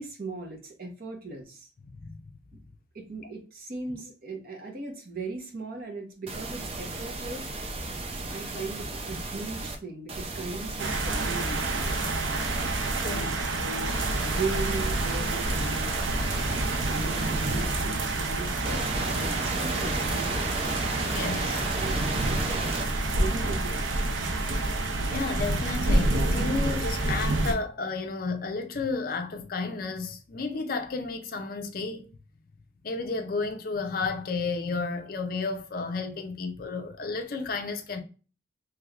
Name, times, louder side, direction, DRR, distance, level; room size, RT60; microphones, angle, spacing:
voice 1, 0.0-1.7 2.9-7.5 8.3-12.0 12.9-13.9 14.2-15.9 16.9-20.4 20.9-21.1 21.7-22.6 23.2-24.0, right 3 dB, 50° right, 0.9 m, -38 dB
voice 2, 1.9-2.2 13.0-13.4 21.1-21.7 23.0-23.1 25.1-32.0 32.8-38.0, left 4 dB, 50° left, 0.5 m, -32 dB
sound 1, 6.3-9.8 10.1-13.2 13.9-17.8 18.6-22.9, right 2 dB, 30° right, 0.4 m, -34 dB
sound 2, 10.8-27.5, right 2 dB, 90° right, 0.6 m, -28 dB
3.2 x 3.1 x 2.4 m
head